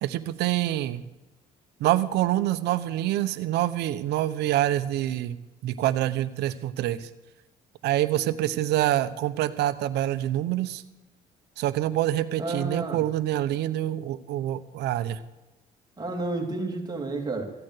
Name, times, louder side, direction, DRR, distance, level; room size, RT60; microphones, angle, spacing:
voice 1, 0.0-1.0 1.8-5.4 5.6-7.1 7.8-10.8 11.6-15.2, right 13 dB, 80° right, 12 dB, 0.9 m, -26 dB
voice 2, 12.4-13.0 16.0-17.5, right 2 dB, 25° right, 1 dB, 2.8 m, -31 dB
15.0 x 8.7 x 6.7 m, 1.0 s
cardioid pair, 110°, 17 cm